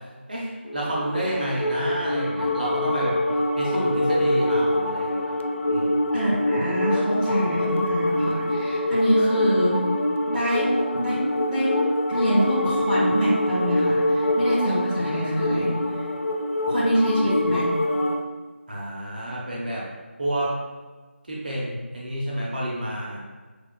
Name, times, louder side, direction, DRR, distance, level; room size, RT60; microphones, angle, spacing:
voice 1, 0.3-3.2 3.6-5.4 5.7-6.1 18.7-19.9 20.2-20.5 21.3-23.2, right 1 dB, 45° right, -5 dB, 0.9 m, -29 dB
sound 1, 0.7-18.2, left 1 dB, 70° left, 0.4 m, -25 dB
voice 2, 6.1-9.8 10.2-11.8 12.1-15.7 16.7-17.7, equal, ahead, -21 dB, 1.1 m, -25 dB
5.5 x 3.4 x 2.2 m, 1.4 s
figure-of-eight pair, 170°, 7 cm